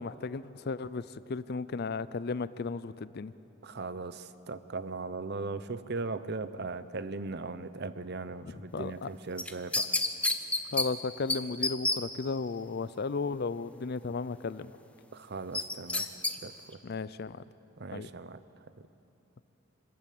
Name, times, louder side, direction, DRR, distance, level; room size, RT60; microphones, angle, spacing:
voice 1, 0.0-3.3 8.4-9.1 10.7-14.7 16.8-17.4 17.9-18.1, left 4 dB, 45° left, 16 dB, 0.4 m, -35 dB
voice 2, 3.6-9.9 15.1-16.8 17.8-18.4, right 3 dB, 50° right, 13 dB, 0.7 m, -38 dB
sound 1, 9.4-10.9 11.3-11.4 11.6-12.0 15.5-16.3 16.7-16.8, left 2 dB, 5° left, 0.7 m, -28 dB
26.0 x 13.0 x 8.6 m, 2.9 s
head